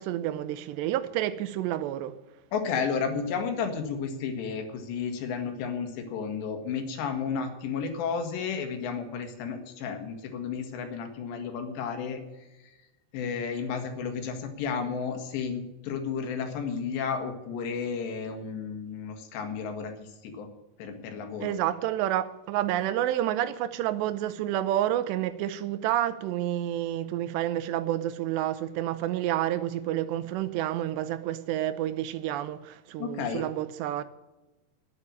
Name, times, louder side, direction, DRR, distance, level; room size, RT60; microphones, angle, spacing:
voice 1, 0.0-2.1 21.4-34.0, right 12 dB, 90° right, 3.0 m, -29 dB
voice 2, 2.5-12.2 13.1-20.5 20.8-21.5 33.0-33.4, left 6 dB, 90° left, 3.9 m, -32 dB
10.0 x 9.9 x 9.8 m
omnidirectional pair, 4.8 m